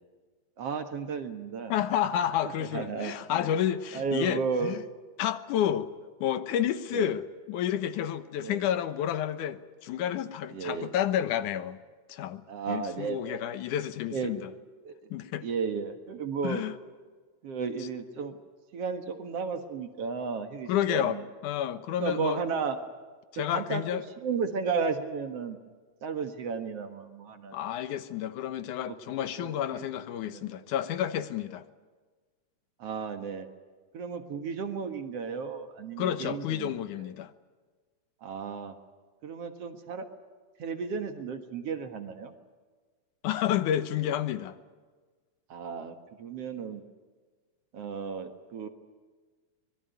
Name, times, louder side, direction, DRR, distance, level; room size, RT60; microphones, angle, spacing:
voice 1, 0.6-1.7 2.6-3.4 3.9-4.8 6.9-7.2 8.4-8.7 10.5-10.9 12.5-13.4 14.1-14.3 14.8-14.9 15.4-16.6 17.4-18.4 18.7-21.2 22.0-22.8 23.5-25.6 26.0-27.6 28.8-29.0 29.4-29.8 30.3-30.7 32.8-33.5 33.9-37.1 38.2-38.8 39.2-40.1 40.6-42.3 45.5-46.8 47.7-48.7, right 5 dB, 55° right, 7 dB, 2.4 m, -34 dB
voice 2, 1.7-4.8 5.2-5.9 6.2-11.8 12.1-12.4 12.7-14.5 15.1-15.5 16.4-16.8 20.7-22.4 23.3-24.0 27.5-31.6 36.0-37.3 43.2-44.5, left 10 dB, 85° left, 12 dB, 2.6 m, -30 dB
24.5 x 22.0 x 9.4 m, 1.4 s
omnidirectional pair, 3.5 m